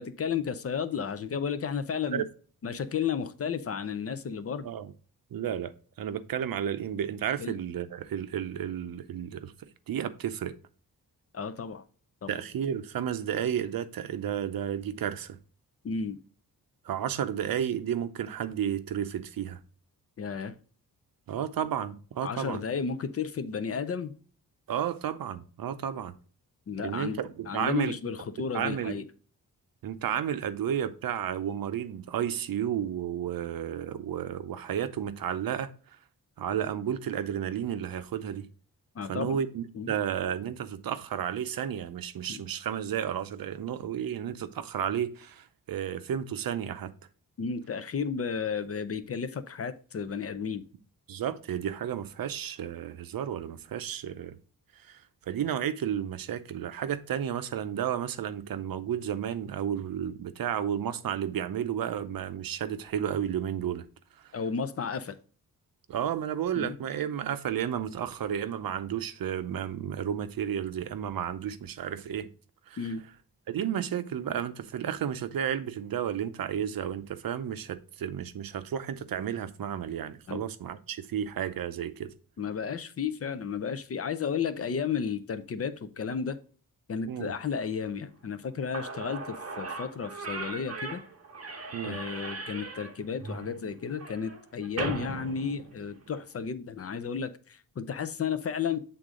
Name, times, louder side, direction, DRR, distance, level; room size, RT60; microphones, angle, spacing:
voice 1, 0.0-2.2 2.6-4.7 7.4-7.6 11.3-11.8 12.2-12.3 15.8-16.2 20.2-20.5 22.2-24.1 26.7-29.0 39.0-39.4 39.7-39.9 42.3-42.4 47.4-50.7 64.3-65.2 66.6-66.8 72.8-73.0 80.3-80.4 82.4-86.4 86.9-91.0 91.8-98.8, left 6 dB, 40° left, 0.6 m, -33 dB
voice 2, 5.3-5.7 6.0-9.5 9.9-10.5 12.3-15.4 16.8-19.6 21.3-22.6 24.7-26.1 26.8-27.9 28.5-29.0 29.8-35.7 36.4-38.5 39.1-46.9 51.1-54.4 54.9-55.0 55.3-63.8 65.9-72.3 72.7-72.9 73.5-82.1 87.1-87.4 91.7-92.0, right 9 dB, 70° right, 0.7 m, -32 dB
Slam / Squeak, 88.4-88.5 88.7-96.2, right 3 dB, 45° right, 1.3 m, -38 dB
7.9 x 3.8 x 3.7 m
wide cardioid pair, 170°, 36 cm